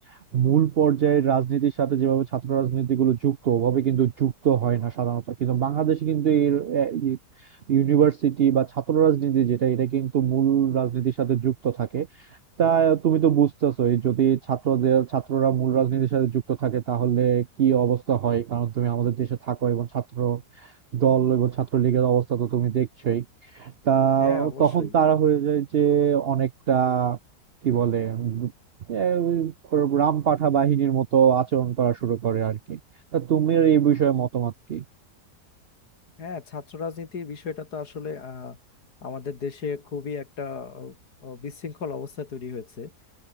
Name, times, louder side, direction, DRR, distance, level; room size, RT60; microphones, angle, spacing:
voice 1, 0.3-7.2 7.7-12.1 12.6-23.2 23.5-27.2 27.6-28.5 28.9-32.8 33.1-34.8, right 9 dB, 65° right, 0.6 m, -22 dB
voice 2, 24.2-24.9 36.2-38.6 39.0-41.0 41.2-42.9, left 5 dB, 70° left, 2.9 m, -35 dB
omnidirectional pair, 1.7 m